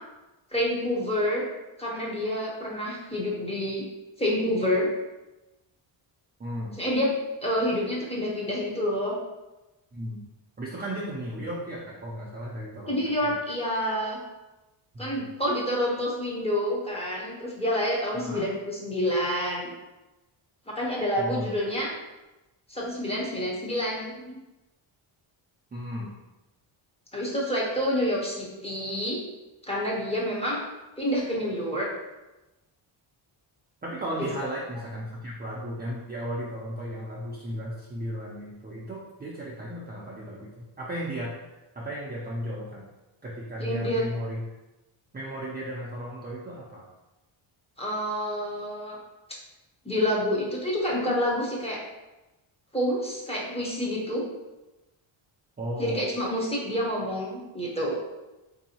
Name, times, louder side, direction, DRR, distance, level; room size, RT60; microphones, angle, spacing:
voice 1, 0.5-1.4 1.8-3.9 4.2-4.9 6.8-7.1 7.4-9.2 12.9-14.2 15.0-19.7 20.7-21.9 22.7-24.4 27.1-29.2 29.7-30.6 31.0-31.9 34.2-34.3 43.6-44.0 47.8-49.0 49.8-51.8 52.7-54.2 55.8-57.9, equal, 10° left, -4 dB, 0.7 m, -28 dB
voice 2, 6.4-6.7 9.9-10.2 10.6-13.4 14.9-15.2 18.1-18.5 21.2-21.5 25.7-26.1 33.8-41.4 41.8-42.9 43.2-44.5 45.1-46.9 55.6-56.0, equal, 20° right, -5 dB, 0.4 m, -35 dB
3.8 x 2.7 x 2.8 m, 1.0 s
wide cardioid pair, 135°, 49 cm